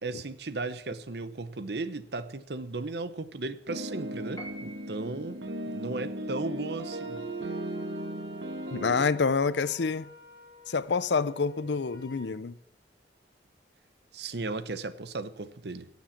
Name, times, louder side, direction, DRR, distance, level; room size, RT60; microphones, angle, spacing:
voice 1, 0.0-5.4 5.7-7.2 14.1-15.9, right 3 dB, 70° right, 0.9 m, -35 dB
sound 1, 3.7-9.0, right 1 dB, 85° right, 1.3 m, -36 dB
Piano, 4.4-5.3, right 2 dB, 20° left, 2.2 m, -45 dB
Wind instrument woodwind instrument, 6.8-12.3, equal, 25° right, 7.4 m, -52 dB
voice 2, 8.7-10.1 10.7-12.6, left 5 dB, 80° left, 0.6 m, -27 dB
16.0 x 7.3 x 7.3 m
head